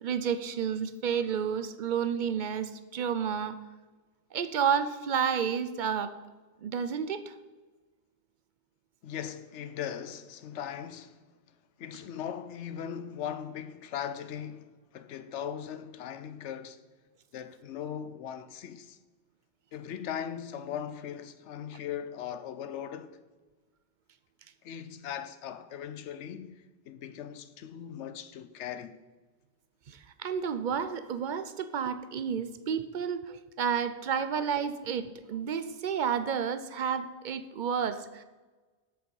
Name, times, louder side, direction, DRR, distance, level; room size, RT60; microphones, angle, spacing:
voice 1, 0.0-3.6 4.3-6.2 6.6-7.3 29.9-38.2, right 7 dB, 55° right, 0.6 m, -31 dB
voice 2, 9.0-11.3 11.8-16.8 17.3-19.0 19.7-23.2 24.6-29.0, left 9 dB, 85° left, 1.0 m, -39 dB
7.8 x 6.7 x 5.4 m
omnidirectional pair, 1.2 m